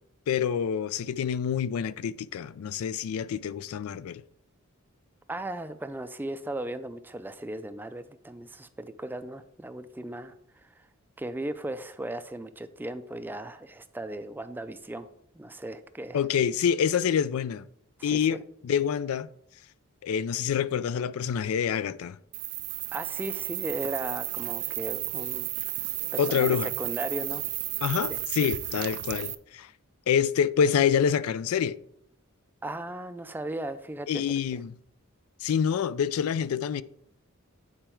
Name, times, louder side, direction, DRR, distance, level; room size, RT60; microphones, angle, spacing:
voice 1, 0.3-4.2 16.1-17.6 18.0-19.3 20.0-22.2 26.2-26.7 27.8-29.7 30.1-31.8 34.1-34.8 35.4-36.8, left 7 dB, 80° left, 0.3 m, -27 dB
voice 2, 5.3-10.3 10.6-10.7 11.2-15.1 15.3-16.2 18.0-18.4 22.9-27.4 27.9-28.0 32.6-34.6, right 1 dB, 10° right, 0.3 m, -37 dB
sound 1, 22.3-29.3, right 17 dB, 90° right, 0.5 m, -33 dB
8.8 x 4.4 x 4.5 m
head